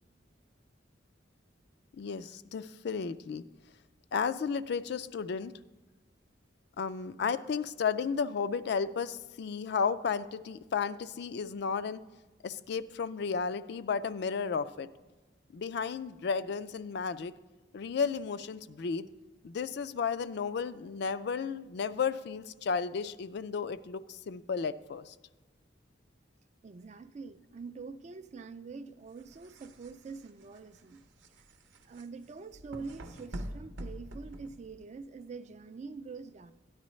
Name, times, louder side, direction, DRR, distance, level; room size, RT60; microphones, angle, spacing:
voice 1, 2.0-3.4 4.1-5.5 6.8-12.0 12.4-14.9 15.5-17.3 17.7-19.1 19.4-25.1, left 6 dB, 60° left, 0.3 m, -33 dB
voice 2, 26.6-31.0 31.8-36.5, right 4 dB, 40° right, 0.3 m, -45 dB
sound 1, 29.1-35.0, right 1 dB, 85° right, 0.7 m, -45 dB
13.0 x 9.6 x 3.1 m
head